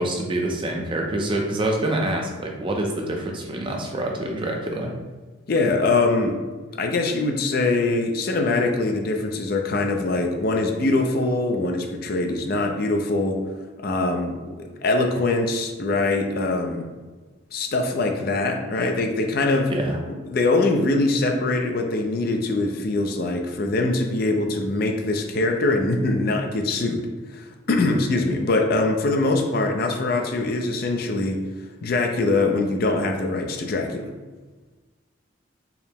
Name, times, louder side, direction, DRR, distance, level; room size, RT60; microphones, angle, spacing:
voice 1, 0.0-5.0 19.7-20.0, right 1 dB, 25° right, 1 dB, 0.4 m, -26 dB
voice 2, 5.5-6.4 6.8-13.4 13.8-16.9 17.5-19.7 20.3-27.0 27.3-31.4 31.8-34.1, left 2 dB, 45° left, 4 dB, 0.4 m, -23 dB
4.6 x 2.0 x 3.4 m, 1.3 s
head